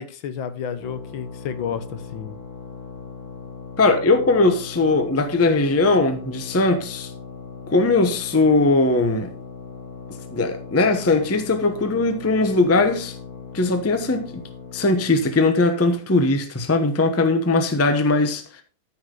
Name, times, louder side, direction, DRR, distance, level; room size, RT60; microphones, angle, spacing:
voice 1, 0.0-2.4, left 7 dB, 80° left, 1.7 m, -31 dB
sound 1, 0.8-15.3, left 5 dB, 50° left, 2.1 m, -39 dB
voice 2, 3.8-7.1 7.7-9.3 10.3-13.1 13.5-14.4 14.7-18.4, left 3 dB, 15° left, 0.5 m, -19 dB
13.0 x 5.7 x 3.8 m
omnidirectional pair, 2.2 m